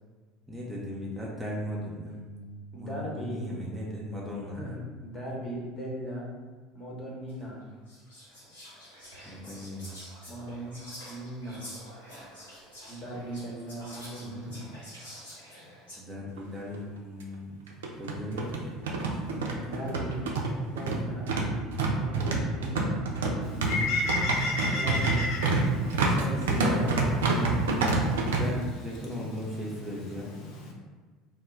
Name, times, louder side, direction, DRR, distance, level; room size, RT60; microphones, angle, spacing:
voice 1, 0.5-4.7 9.2-10.0 14.2-14.6 16.0-18.7 24.9-25.1 26.5-27.0 27.9-30.3, left 1 dB, 15° right, -5 dB, 0.5 m, -38 dB
voice 2, 2.7-3.4 4.5-6.3 6.7-7.6 10.3-10.8 11.0-11.7 12.9-14.7 19.3-20.2 20.6-21.3 22.0-22.9 24.8-25.2 25.9-27.9, equal, 25° left, -3 dB, 0.8 m, -38 dB
Whispering, 7.3-7.4 7.9-16.0, equal, 80° left, 1.0 m, -47 dB
sound 1, 16.4-16.5 16.7-16.8 17.7-28.4, right 3 dB, 70° right, 0.3 m, -27 dB
Bird, 23.4-30.7, left 2 dB, 55° left, 0.5 m, -35 dB
2.1 x 2.0 x 3.7 m, 1.4 s
figure-of-eight pair, 65°, 0 cm